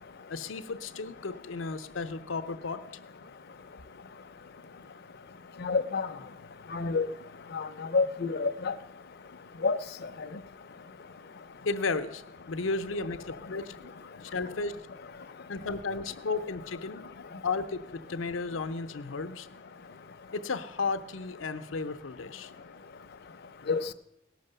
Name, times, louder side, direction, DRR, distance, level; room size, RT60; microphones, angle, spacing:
voice 1, 0.3-2.8 11.7-13.8 14.2-14.7 15.5-17.1 17.4-19.5 20.3-22.5, left 4 dB, 85° left, 0.7 m, -34 dB
voice 2, 5.6-6.1 6.7-7.1 7.5-7.7 7.9-8.7 9.6-9.8 23.7-23.8, left 4 dB, 55° left, 0.5 m, -27 dB
17.5 x 6.5 x 6.6 m
head